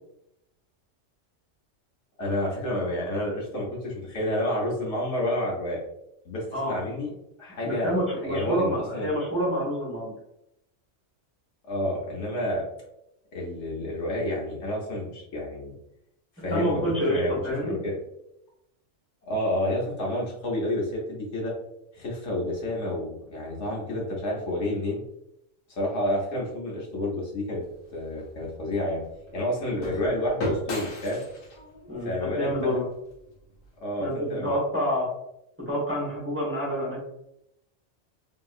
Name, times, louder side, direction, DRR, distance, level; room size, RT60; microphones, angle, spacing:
voice 1, 2.2-5.8 6.2-7.1 7.4-9.1 11.6-12.6 13.3-15.7 16.4-17.3 17.6-18.0 19.3-21.5 21.9-25.0 25.7-27.6 27.9-29.0 29.3-31.2 32.0-32.8 33.8-34.6, left 1 dB, 65° left, -3 dB, 1.2 m, -29 dB
voice 2, 7.6-10.1 16.5-17.7 29.6-29.9 31.9-32.8 34.0-35.1 35.6-37.0, equal, 10° right, -6 dB, 1.0 m, -27 dB
sound 1, 27.6-33.7, left 1 dB, 85° left, 1.2 m, -37 dB
2.9 x 2.8 x 2.4 m, 0.82 s
omnidirectional pair, 1.3 m